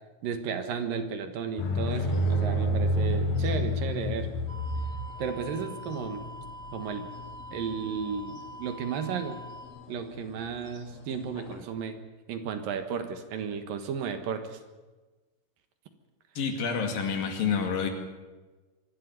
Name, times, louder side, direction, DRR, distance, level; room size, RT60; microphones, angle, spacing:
voice 1, 0.2-4.3 5.2-6.2 6.7-7.1 7.5-9.4 9.9-11.9 12.3-14.6, right 6 dB, 70° right, 8 dB, 3.0 m, -33 dB
sound 1, 1.6-8.4 9.0-9.5 9.8-9.9 10.3-11.6, equal, 45° left, 2.5 m, -29 dB
sound 2, 4.5-9.7, equal, 10° right, 4.7 m, -44 dB
voice 2, 16.4-17.9, left 6 dB, 65° left, 5 dB, 3.9 m, -28 dB
24.5 x 12.0 x 9.6 m, 1.2 s
omnidirectional pair, 4.4 m